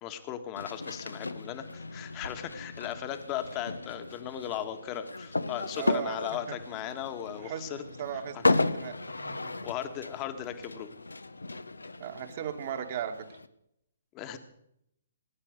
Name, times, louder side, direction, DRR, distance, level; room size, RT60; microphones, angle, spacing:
voice 1, 0.0-7.8 8.3-8.4 9.6-10.9 14.1-14.4, left 10 dB, 25° left, 9 dB, 1.5 m, -37 dB
sound 1, 0.6-13.5, left 2 dB, 80° left, 0.9 m, -35 dB
voice 2, 5.8-6.1 7.4-9.5 12.0-13.1, right 9 dB, 45° right, 7 dB, 1.9 m, -37 dB
20.0 x 9.9 x 6.5 m, 0.75 s
figure-of-eight pair, 125°, 0 cm